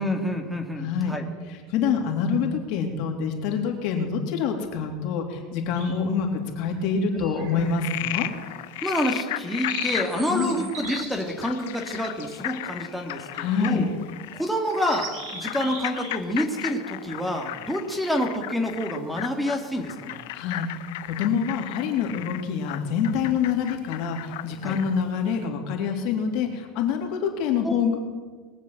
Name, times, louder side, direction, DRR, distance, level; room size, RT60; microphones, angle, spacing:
voice 1, 0.0-1.3 7.1-7.8 8.8-13.9 14.3-20.2 24.6-24.8 27.6-27.7, equal, ahead, 4 dB, 2.0 m, -28 dB
voice 2, 0.8-1.2 1.5-8.3 10.3-10.6 13.3-13.9 20.3-20.7 21.0-28.0, left 6 dB, 60° left, 3 dB, 3.0 m, -26 dB
sound 1, 5.8-6.3 7.4-8.0 8.4-8.6 9.2-12.6 13.3-13.8 14.1-14.2 14.6-16.2 16.5-16.7, right 4 dB, 70° right, 4.1 m, -40 dB
Frog, 7.6-25.0, left 16 dB, 80° left, 0.8 m, -35 dB
21.5 x 7.4 x 7.8 m, 1.4 s
supercardioid pair, 130°, 0 cm